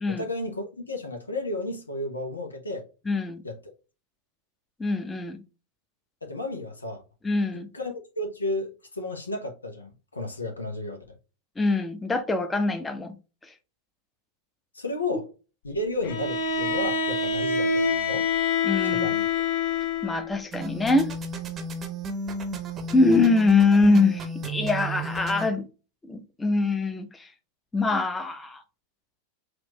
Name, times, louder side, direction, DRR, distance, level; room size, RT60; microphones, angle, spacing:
voice 1, 0.1-2.8 3.4-3.6 6.2-7.0 7.7-11.0 14.7-15.3 15.6-18.3 18.8-19.2, left 2 dB, 80° left, 0.9 m, -32 dB
voice 2, 3.1-3.4 4.8-5.4 7.2-7.7 11.6-13.1 13.5-13.6 18.6-19.1 20.0-21.1 22.9-25.6 26.1-27.3 27.7-28.6, left 3 dB, 10° left, 0.7 m, -23 dB
Bowed string instrument, 16.0-20.3, left 4 dB, 50° left, 0.9 m, -26 dB
sound 1, 20.5-25.5, right 2 dB, 25° right, 0.8 m, -33 dB
6.0 x 2.5 x 3.0 m
figure-of-eight pair, 90°, 0 cm